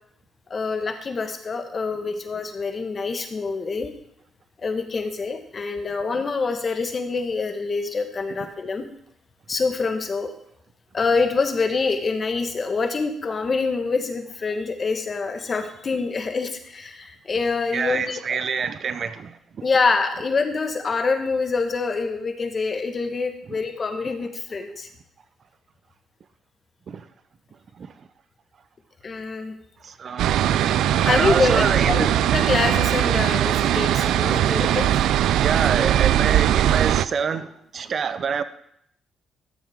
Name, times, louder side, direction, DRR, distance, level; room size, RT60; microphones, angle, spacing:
voice 1, 0.5-3.9 4.6-8.9 9.5-10.3 10.9-18.4 19.6-24.9 29.0-29.5 30.9-34.9, left 4 dB, 40° left, 1.4 m, -25 dB
voice 2, 17.7-19.4 23.5-23.6 26.9-27.0 27.8-27.9 29.8-30.7 31.0-32.1 35.4-38.4, right 6 dB, 50° right, 0.7 m, -27 dB
sound 1, 30.2-37.1, right 11 dB, 80° right, 0.3 m, -20 dB
13.5 x 7.2 x 3.6 m
cardioid pair, 90°, 0 cm